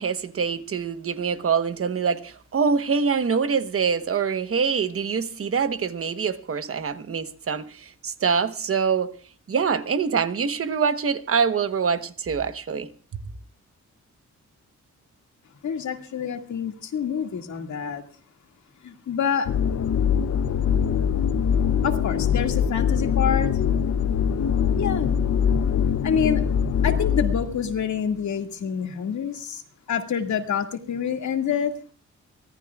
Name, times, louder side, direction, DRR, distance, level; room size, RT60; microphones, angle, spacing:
voice 1, 0.0-9.1 9.5-12.9, right 6 dB, 45° right, 1.1 m, -25 dB
voice 2, 15.6-18.0 18.8-19.5 21.8-23.5 24.8-25.2 26.0-26.5 26.8-29.6 29.9-31.7, left 7 dB, 70° left, 2.1 m, -27 dB
sound 1, 19.5-27.8, left 7 dB, 55° left, 0.8 m, -23 dB
24.5 x 18.0 x 2.4 m
wide cardioid pair, 160°, 30 cm